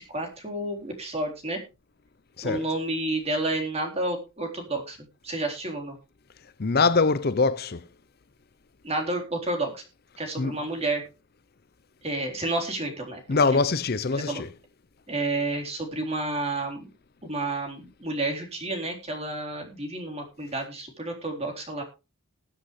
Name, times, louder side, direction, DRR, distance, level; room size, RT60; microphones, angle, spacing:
voice 1, 0.0-1.6 2.4-5.0 5.2-6.0 8.8-9.8 10.2-11.0 12.0-13.6 14.1-14.4 15.1-16.9 17.2-21.8, right 2 dB, 30° right, 3.9 m, -30 dB
voice 2, 2.4-2.7 6.6-7.8 10.4-10.6 13.3-14.5, left 4 dB, 50° left, 0.6 m, -23 dB
21.0 x 7.7 x 3.2 m
head